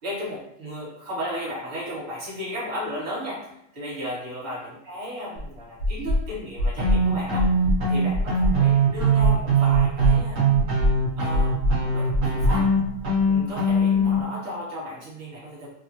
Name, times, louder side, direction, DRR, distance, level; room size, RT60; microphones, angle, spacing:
voice 1, 0.0-7.5 7.9-10.4 11.2-12.7 13.3-15.7, equal, 30° right, -7 dB, 1.3 m, -34 dB
sound 1, 5.4-5.5 5.8-6.2 6.6-7.0 7.4-7.8 8.1-8.6 8.9-9.4 9.7-10.2 10.5-10.9 11.3-11.8 12.1-13.3, left 1 dB, 65° left, 0.9 m, -23 dB
sound 2, 6.8-14.2, right 2 dB, 55° right, 1.0 m, -21 dB
3.2 x 2.3 x 2.7 m, 0.79 s
omnidirectional pair, 2.1 m